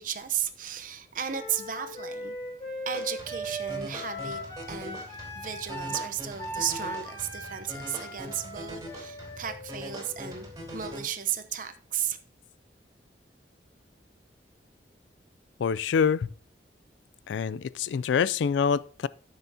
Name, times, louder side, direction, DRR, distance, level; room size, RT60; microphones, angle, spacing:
voice 1, 0.0-2.3 2.9-4.4 4.7-10.5 10.7-12.2, right 9 dB, 45° right, 0.7 m, -34 dB
Wind instrument woodwind instrument, 1.3-11.1, right 1 dB, 25° left, 3.4 m, -39 dB
sound 1, 2.9-11.0, equal, 20° right, 3.3 m, -42 dB
voice 2, 15.6-16.3 17.3-19.1, left 6 dB, 80° left, 0.3 m, -26 dB
13.5 x 6.9 x 2.8 m
head